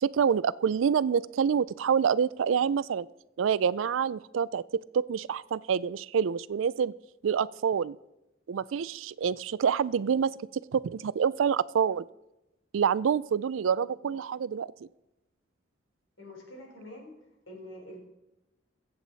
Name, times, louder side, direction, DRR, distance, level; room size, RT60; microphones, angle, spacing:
voice 1, 0.0-3.1 3.4-6.9 7.2-8.0 8.5-10.3 10.7-12.1 12.7-14.7, right 7 dB, 90° right, 20 dB, 0.4 m, -27 dB
voice 2, 16.2-18.0, left 1 dB, 80° left, -1 dB, 4.1 m, -46 dB
22.0 x 8.1 x 4.0 m, 0.94 s
head